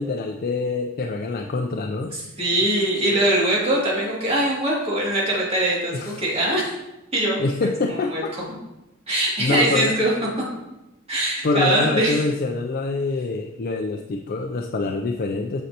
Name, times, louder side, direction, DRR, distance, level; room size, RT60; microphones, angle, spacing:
voice 1, 0.0-2.1 5.9-6.2 7.4-8.4 9.4-9.9 11.4-15.6, left 3 dB, 45° left, 3 dB, 0.4 m, -25 dB
voice 2, 2.1-6.7 7.1-7.4 7.9-8.2 9.1-10.1 11.1-12.2, right 1 dB, 30° right, -5 dB, 2.4 m, -22 dB
8.3 x 6.5 x 2.9 m, 0.95 s
head